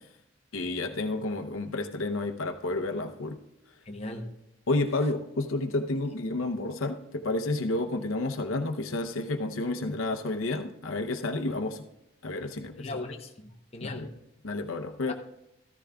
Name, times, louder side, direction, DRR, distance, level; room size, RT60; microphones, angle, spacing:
voice 1, 0.5-3.4 4.7-11.8 12.2-12.9 13.8-14.1 14.4-15.1, left 2 dB, 75° left, 6 dB, 0.7 m, -30 dB
voice 2, 3.9-4.3 12.8-14.1, left 2 dB, 30° left, 2 dB, 0.8 m, -38 dB
14.0 x 13.5 x 2.3 m, 0.83 s
head